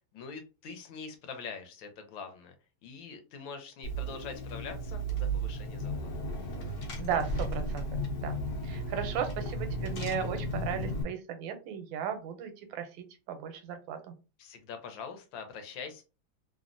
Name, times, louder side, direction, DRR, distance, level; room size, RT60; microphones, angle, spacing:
voice 1, 0.1-2.5 2.8-6.7 14.4-16.0, left 5 dB, 80° left, 6 dB, 1.4 m, -44 dB
Car / Engine, 3.8-11.0, right 1 dB, 60° left, 1.1 m, -34 dB
voice 2, 7.0-7.8 8.2-8.4 8.6-14.1, right 8 dB, 80° right, 8 dB, 1.3 m, -36 dB
3.3 x 2.1 x 2.5 m, 0.31 s
omnidirectional pair, 2.1 m